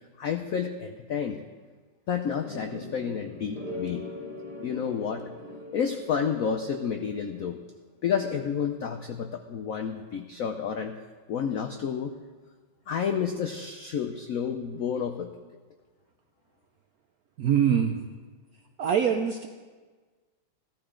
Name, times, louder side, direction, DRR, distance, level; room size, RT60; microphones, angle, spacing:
voice 1, 0.2-1.4 2.1-4.1 4.6-5.2 5.7-7.6 8.0-11.0 11.3-12.1 12.9-15.3, left 7 dB, 85° left, 6 dB, 0.7 m, -30 dB
sound 1, 2.4-7.5, left 1 dB, 25° right, 1.7 m, -41 dB
voice 2, 17.4-18.0 18.8-19.5, right 8 dB, 75° right, 5 dB, 0.8 m, -23 dB
15.0 x 13.0 x 3.8 m, 1.4 s
omnidirectional pair, 2.3 m